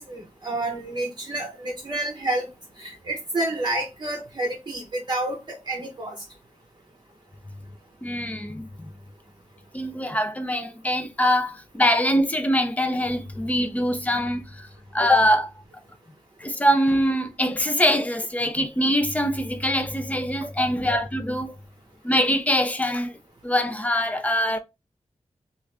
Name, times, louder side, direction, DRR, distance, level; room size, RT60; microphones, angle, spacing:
voice 1, 0.0-2.5 2.8-6.2 20.4-20.7, right 2 dB, 40° right, 0.8 m, -29 dB
voice 2, 8.0-8.9 9.7-14.7 14.9-15.5 16.4-21.6 22.0-23.2 23.4-24.6, equal, 10° left, 0.5 m, -23 dB
3.0 x 2.5 x 3.3 m
wide cardioid pair, 130°, 12 cm